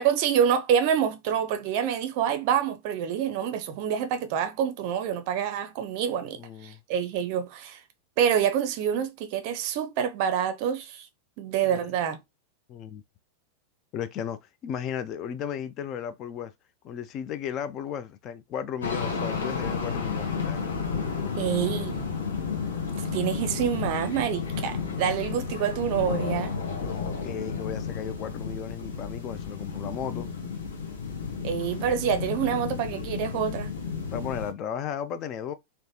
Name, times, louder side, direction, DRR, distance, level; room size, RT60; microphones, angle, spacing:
voice 1, 0.0-7.8 8.2-11.1 11.4-12.2 21.4-22.2 23.0-26.5 31.4-33.7, right 8 dB, 45° right, 0.5 m, -27 dB
voice 2, 6.4-6.8 11.6-11.9 12.7-13.0 13.9-16.5 16.8-20.7 21.4-21.9 26.6-30.3 34.1-35.5, left 8 dB, 35° left, 0.3 m, -35 dB
sound 1, 18.8-34.5, left 5 dB, 70° left, 0.7 m, -32 dB
3.1 x 2.1 x 2.7 m
figure-of-eight pair, 90°, 0 cm